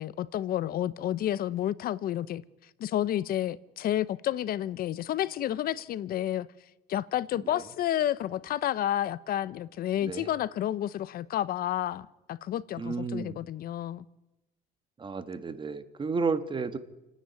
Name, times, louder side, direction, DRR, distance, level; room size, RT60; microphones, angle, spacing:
voice 1, 0.0-2.4 2.8-6.5 6.9-14.0, left 12 dB, 60° left, 0.7 m, -30 dB
voice 2, 12.8-13.4 15.0-16.8, right 4 dB, 30° right, 1.4 m, -32 dB
28.5 x 10.0 x 9.4 m
cardioid pair, 110°, 17 cm